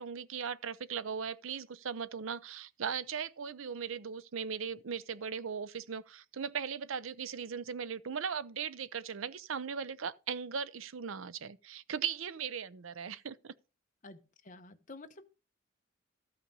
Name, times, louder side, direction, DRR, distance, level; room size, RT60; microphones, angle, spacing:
voice 1, 0.0-13.5, right 7 dB, 75° right, 0.6 m, -38 dB
voice 2, 14.0-15.3, left 2 dB, 40° left, 1.0 m, -50 dB
14.0 x 5.7 x 5.4 m
head